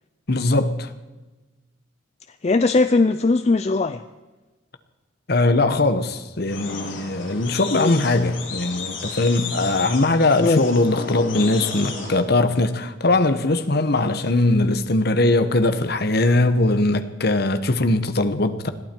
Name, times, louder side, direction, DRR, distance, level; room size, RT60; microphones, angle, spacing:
voice 1, 0.3-0.9 5.3-18.7, left 2 dB, 55° left, 1.1 m, -20 dB
voice 2, 2.4-4.0 7.7-8.0 10.4-10.6, left 3 dB, 35° left, 0.4 m, -19 dB
sound 1, 6.5-12.2, left 4 dB, 80° left, 7.3 m, -33 dB
21.0 x 15.0 x 4.5 m
head